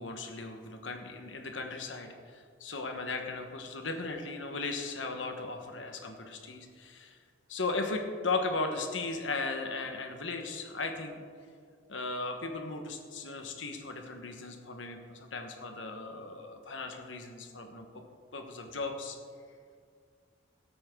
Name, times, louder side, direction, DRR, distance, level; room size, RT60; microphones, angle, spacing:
voice 1, 0.0-7.2 7.5-11.2 11.9-18.0 18.3-19.2, left 3 dB, 80° left, 4 dB, 1.3 m, -37 dB
18.0 x 8.7 x 3.8 m, 2.1 s
head